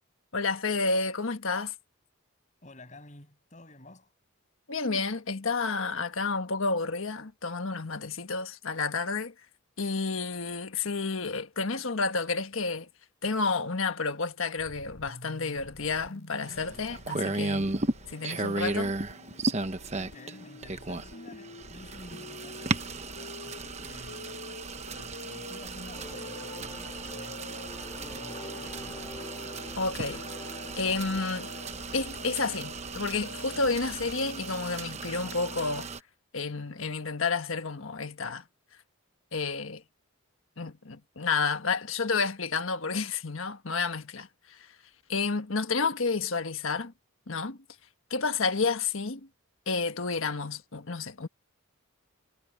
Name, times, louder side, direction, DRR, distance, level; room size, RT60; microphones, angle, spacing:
voice 1, 0.3-1.7 4.7-9.3 9.8-12.9 13.2-17.7 18.1-19.0 29.8-30.2 30.8-31.5 31.9-35.9 36.3-38.4 39.3-39.8 40.6-44.7 45.1-46.9 47.3-47.6 48.1-49.3 49.7-51.3, left 4 dB, 70° left, 1.4 m, -30 dB
voice 2, 2.6-4.1 19.9-24.4 24.7-29.2, left 1 dB, 35° left, 7.3 m, -51 dB
sound 1, 14.6-34.1, left 2 dB, 90° left, 2.9 m, -48 dB
sound 2, 16.4-36.0, right 3 dB, 30° right, 1.0 m, -35 dB
sound 3, 25.9-33.4, left 1 dB, 20° left, 2.8 m, -47 dB
head